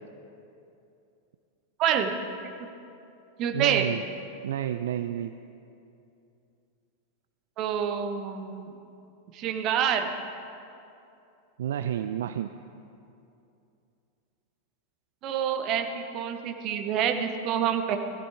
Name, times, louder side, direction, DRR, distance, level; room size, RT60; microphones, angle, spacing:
voice 1, 1.8-2.1 3.4-3.9 7.6-8.7 9.3-10.1 15.2-18.0, right 8 dB, 35° right, 6 dB, 1.1 m, -27 dB
voice 2, 3.5-4.0 4.4-5.3 11.6-12.5, right 10 dB, 60° right, 10 dB, 0.4 m, -30 dB
19.0 x 13.5 x 3.6 m, 2.7 s
figure-of-eight pair, 90°, 0 cm